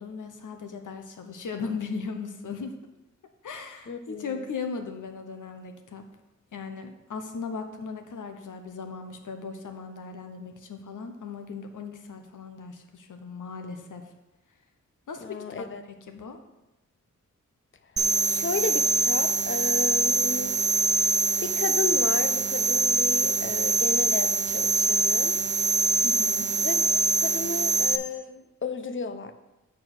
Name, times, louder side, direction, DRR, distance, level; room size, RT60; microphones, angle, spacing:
voice 1, 0.0-2.7 3.4-6.0 6.5-14.0 15.1-15.4 16.1-16.4 26.0-26.5, left 5 dB, 75° left, 6 dB, 0.9 m, -37 dB
voice 2, 3.9-4.4 15.2-15.8 18.2-20.6 21.4-25.3 26.6-29.3, left 5 dB, 40° left, 9 dB, 0.6 m, -33 dB
sound 1, 18.0-28.0, right 4 dB, 35° right, 0.5 m, -24 dB
8.5 x 4.6 x 6.0 m, 0.97 s
wide cardioid pair, 155°, 31 cm